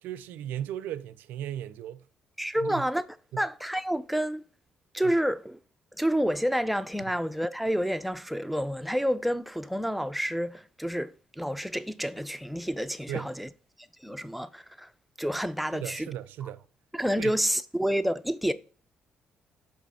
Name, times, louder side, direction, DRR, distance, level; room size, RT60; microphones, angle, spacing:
voice 1, 0.0-2.1 2.6-2.9 3.3-3.4 5.0-5.2 7.1-7.2 13.1-13.3 15.7-16.6 17.2-17.4, right 11 dB, 85° right, 0.3 m, -36 dB
voice 2, 2.4-3.0 3.4-4.4 4.9-5.6 6.0-13.5 14.0-14.9 15.2-16.1 16.9-18.5, equal, ahead, 0.4 m, -29 dB
5.1 x 3.5 x 5.5 m
cardioid pair, 85°, 3 cm